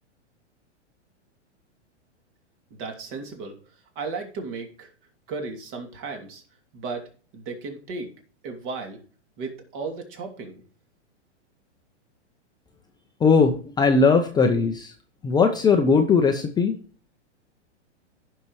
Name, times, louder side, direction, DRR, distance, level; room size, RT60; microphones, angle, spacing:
voice 1, 2.7-4.9 5.3-6.4 6.7-8.1 8.4-9.0 9.4-10.6, right 4 dB, 45° right, 4 dB, 2.7 m, -35 dB
voice 2, 13.2-14.9 15.2-16.8, left 4 dB, 10° left, 3 dB, 0.6 m, -19 dB
15.5 x 5.6 x 3.1 m, 0.39 s
hypercardioid pair, 130°, 36 cm